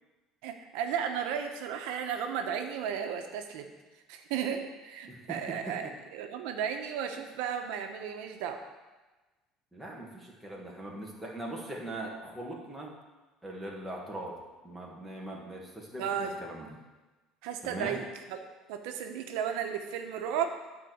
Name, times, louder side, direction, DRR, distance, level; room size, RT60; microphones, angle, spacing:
voice 1, 0.4-3.7 4.1-8.6 16.0-16.4 17.4-18.0 18.3-18.4 18.7-20.6, right 8 dB, 80° right, 5 dB, 1.0 m, -34 dB
voice 2, 5.1-5.9 9.7-12.9 13.4-14.4 14.6-16.8 17.6-18.0, right 1 dB, ahead, -3 dB, 1.5 m, -41 dB
9.9 x 4.7 x 7.9 m, 1.2 s
cardioid pair, 170°, 0 cm